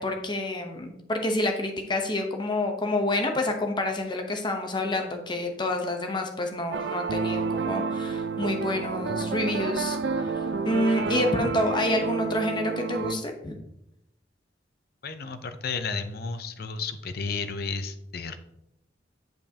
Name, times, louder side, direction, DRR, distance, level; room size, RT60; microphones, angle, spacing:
voice 1, 0.0-10.0 10.6-13.5, left 1 dB, 25° left, 4 dB, 0.9 m, -28 dB
sound 1, 6.7-13.1, right 5 dB, 70° right, 0.5 m, -29 dB
voice 2, 15.0-18.4, left 4 dB, 55° left, 10 dB, 0.6 m, -32 dB
9.0 x 5.3 x 2.8 m, 0.83 s
head